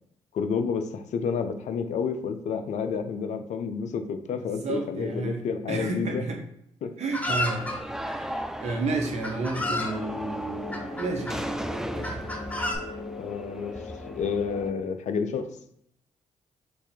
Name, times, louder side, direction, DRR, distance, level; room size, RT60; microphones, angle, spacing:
voice 1, 0.3-6.2 6.8-6.9 13.2-13.8 14.2-15.5, left 6 dB, 65° left, 8 dB, 0.6 m, -30 dB
voice 2, 4.3-5.4 5.7-6.4 7.0-7.7 8.0-11.4 11.9-12.1, right 3 dB, 60° right, 3 dB, 1.0 m, -31 dB
Chicken rooster, 7.1-7.8 8.7-8.8 9.2-9.9 10.7-11.4 12.0-12.7, left 1 dB, 10° left, 1.6 m, -30 dB
sound 1, 7.3-14.7, right 1 dB, 5° right, 0.4 m, -37 dB
sound 2, 9.5-14.7, left 4 dB, 50° left, 1.2 m, -40 dB
4.6 x 2.7 x 4.3 m, 0.72 s
supercardioid pair, 50°, 13 cm